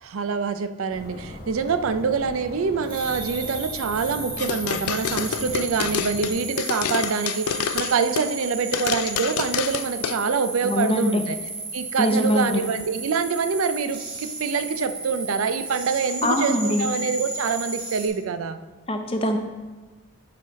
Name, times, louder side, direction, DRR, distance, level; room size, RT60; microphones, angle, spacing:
voice 1, 0.0-11.4 11.7-18.6, right 5 dB, 75° right, 10 dB, 0.5 m, -25 dB
sound 1, 0.9-6.3, left 1 dB, 45° left, 1.1 m, -39 dB
sound 2, 2.8-18.1, right 3 dB, 25° right, 1.3 m, -34 dB
sound 3, 4.4-8.4 8.7-10.2, left 9 dB, 85° left, 0.3 m, -28 dB
voice 2, 10.6-11.2 12.0-12.6 16.2-16.9 18.9-19.4, left 1 dB, 25° left, 5 dB, 0.6 m, -23 dB
9.6 x 4.0 x 5.1 m, 1.2 s
head